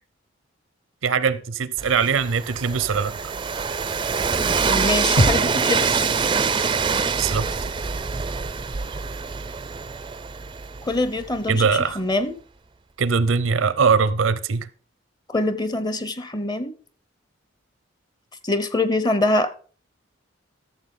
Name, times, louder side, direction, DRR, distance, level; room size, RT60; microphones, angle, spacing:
voice 1, 1.0-3.1 7.2-7.5 11.5-12.0 13.0-14.7, right 5 dB, 85° right, 0.6 m, -21 dB
Train, 1.8-11.6, right 5 dB, 25° right, 0.4 m, -25 dB
voice 2, 4.6-6.0 10.8-11.6 12.0-12.3 15.3-16.7 18.4-19.5, left 2 dB, 20° left, 0.7 m, -24 dB
sound 1, 5.2-9.1 9.4-9.5, equal, 65° left, 1.2 m, -29 dB
13.5 x 7.0 x 3.8 m
head